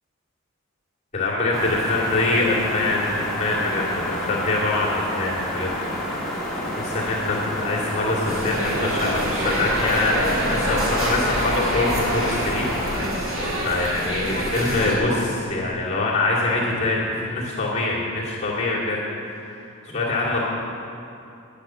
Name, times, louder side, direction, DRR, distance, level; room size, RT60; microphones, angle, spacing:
voice 1, 1.1-5.7 6.1-6.3 6.7-12.6 13.0-19.0 19.3-19.6 19.9-20.4, left 2 dB, 35° left, -6 dB, 2.5 m, -24 dB
sound 1, 1.5-13.0, left 1 dB, ahead, 1.7 m, -30 dB
sound 2, 8.2-14.9, equal, 85° right, 2.5 m, -26 dB
10.5 x 8.8 x 6.2 m, 2.6 s
head